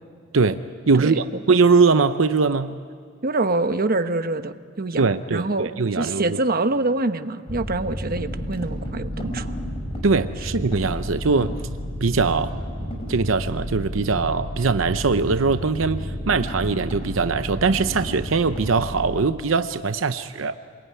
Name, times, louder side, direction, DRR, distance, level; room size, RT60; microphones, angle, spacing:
voice 1, 0.9-2.8 5.0-6.4 10.0-11.5 12.0-12.5 13.1-20.5, right 4 dB, 80° right, 10 dB, 0.7 m, -21 dB
voice 2, 3.2-5.0 5.3-9.5, right 2 dB, 50° right, 9 dB, 1.0 m, -25 dB
sound 1, 7.5-19.2, equal, 30° left, 5.2 m, -31 dB
27.5 x 21.5 x 9.5 m, 2.2 s
head